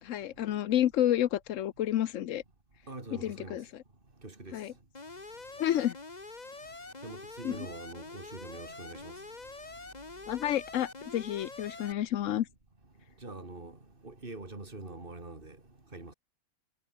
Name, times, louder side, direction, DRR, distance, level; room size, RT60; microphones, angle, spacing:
voice 1, 0.0-2.4 3.2-3.6 4.5-4.7 5.6-6.0 7.4-7.6 10.3-12.5, left 11 dB, 65° left, 1.0 m, -30 dB
voice 2, 2.9-3.6 4.2-4.6 7.0-9.1 13.2-13.8 14.0-15.6 15.9-16.1, right 2 dB, 35° right, 3.7 m, -44 dB
Alarm, 4.9-11.9, left 3 dB, 30° left, 2.1 m, -45 dB
omnidirectional pair, 1.5 m